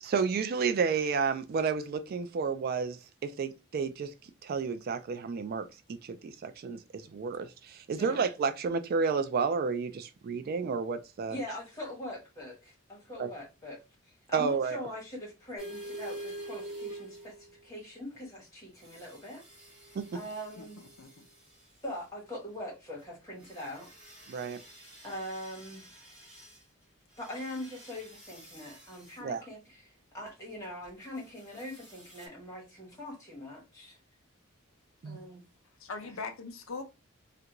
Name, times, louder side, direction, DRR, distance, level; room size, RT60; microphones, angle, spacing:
voice 1, 0.0-4.1 4.4-5.7 6.0-11.4 13.2-13.3 14.3-14.8 20.0-20.1 24.3-24.6 29.2-29.4 35.0-35.2, right 5 dB, 45° right, 0.3 m, -31 dB
voice 2, 11.3-13.8 14.3-19.8 20.1-20.8 21.8-23.9 25.0-25.9 27.2-34.0 35.0-35.4, left 1 dB, 15° left, 1.4 m, -42 dB
sound 1, 15.6-17.7 18.8-21.3 23.4-26.6 27.2-29.1 31.5-32.3, right 1 dB, 5° right, 1.4 m, -47 dB
voice 3, 20.6-21.3 35.8-36.8, left 4 dB, 70° left, 0.6 m, -41 dB
3.3 x 2.4 x 2.9 m
head